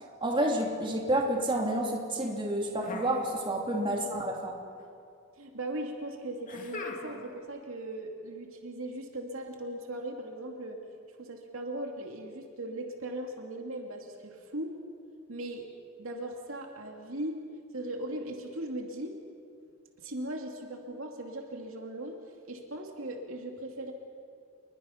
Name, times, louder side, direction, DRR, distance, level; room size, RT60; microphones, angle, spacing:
voice 1, 0.2-4.5, right 1 dB, 25° right, 0 dB, 3.0 m, -29 dB
sound 1, 2.8-3.8 4.1-4.8 6.5-7.4, left 3 dB, 40° left, 2.5 m, -42 dB
voice 2, 5.4-10.8 11.2-14.8 15.3-15.7 16.0-17.4 17.7-19.2 20.0-22.2 22.4-23.9, right 1 dB, 70° right, 2 dB, 2.6 m, -38 dB
28.5 x 22.0 x 5.8 m, 2.4 s
head